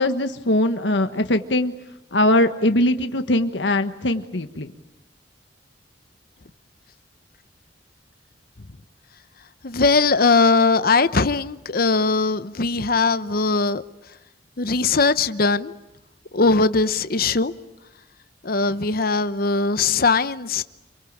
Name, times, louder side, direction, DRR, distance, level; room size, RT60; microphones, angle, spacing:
voice 1, 0.0-1.7 2.1-4.7, left 1 dB, 80° left, 1.4 m, -21 dB
voice 2, 9.6-13.8 14.6-15.7 16.3-17.5 18.4-20.6, left 4 dB, 55° left, 0.9 m, -20 dB
27.5 x 23.5 x 8.8 m
head